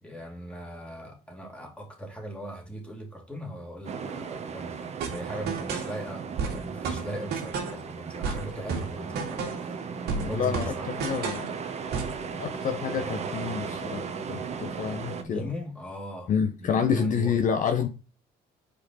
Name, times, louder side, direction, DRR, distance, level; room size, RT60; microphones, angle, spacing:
voice 1, 0.0-9.9 10.2-10.9 15.2-16.3 16.6-17.4, right 1 dB, 5° left, 2.3 m, -39 dB
sound 1, 3.8-15.2, right 5 dB, 40° right, 1.0 m, -36 dB
sound 2, 5.0-5.9 6.4-7.8 8.2-9.7 10.1-11.5 11.9-12.2, right 5 dB, 75° right, 2.1 m, -32 dB
voice 2, 10.1-11.5 12.4-15.5 16.3-17.9, left 7 dB, 50° left, 0.8 m, -28 dB
5.0 x 4.6 x 4.1 m
cardioid pair, 110°, 17 cm